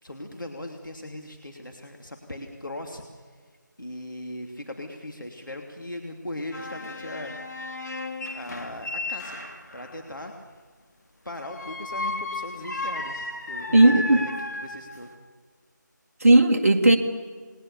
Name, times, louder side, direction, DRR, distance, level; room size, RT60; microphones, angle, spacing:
voice 1, 0.0-3.0 3.8-7.4 8.3-9.4 9.7-10.5 11.2-15.1, left 1 dB, 85° left, 2 dB, 2.8 m, -38 dB
sound 1, 6.5-9.9 11.4-15.2, left 2 dB, 60° left, 3.0 m, -34 dB
voice 2, 13.7-14.2 16.2-17.0, right 2 dB, 45° right, 4 dB, 2.0 m, -16 dB
28.0 x 20.5 x 6.9 m, 1.5 s
figure-of-eight pair, 160°, 10 cm